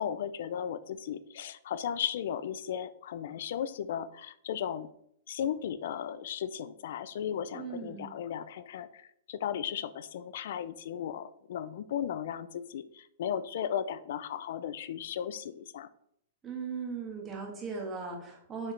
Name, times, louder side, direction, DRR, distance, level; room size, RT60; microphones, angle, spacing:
voice 1, 0.0-4.9 5.3-9.0 9.3-15.9, left 9 dB, 65° left, 14 dB, 0.5 m, -35 dB
voice 2, 7.5-8.2 16.4-18.7, right 5 dB, 20° right, 0 dB, 1.6 m, -38 dB
7.0 x 4.8 x 3.3 m, 0.72 s
hypercardioid pair, 140°, 0 cm